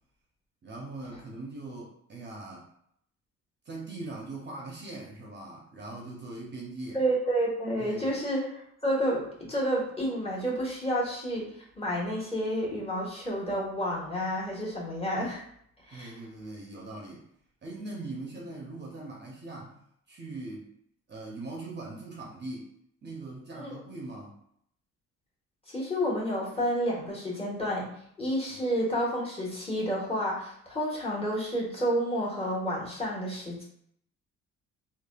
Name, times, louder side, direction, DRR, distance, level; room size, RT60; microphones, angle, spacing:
voice 1, 0.6-2.7 3.7-7.0 7.8-8.2 15.9-17.3 17.6-19.7 20.1-20.7 21.1-22.7 23.0-24.4 28.5-28.6, right 2 dB, 35° right, -2 dB, 0.6 m, -41 dB
voice 2, 6.9-11.5 11.8-15.4 15.9-16.1 23.5-23.7 25.7-27.9 28.2-33.6, equal, 20° left, -5 dB, 1.2 m, -30 dB
3.2 x 2.2 x 2.2 m, 0.69 s
cardioid pair, 90°, 30 cm